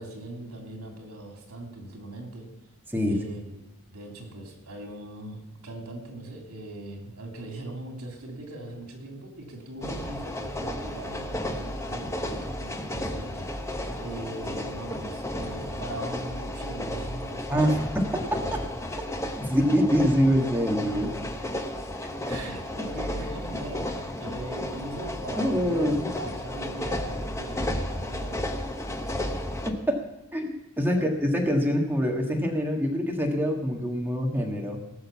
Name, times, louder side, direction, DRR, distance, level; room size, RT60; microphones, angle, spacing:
voice 1, 0.0-2.5 3.1-17.8 22.2-28.5 29.1-29.2 30.8-31.4, right 1 dB, 85° right, 1 dB, 3.0 m, -40 dB
sound 1, 9.8-29.7, left 1 dB, 15° left, 1.0 m, -33 dB
voice 2, 17.5-18.4 19.4-21.2 25.3-26.1 29.9-30.0 30.3-34.8, equal, 10° right, 0 dB, 1.6 m, -25 dB
18.0 x 6.5 x 7.2 m, 0.93 s
head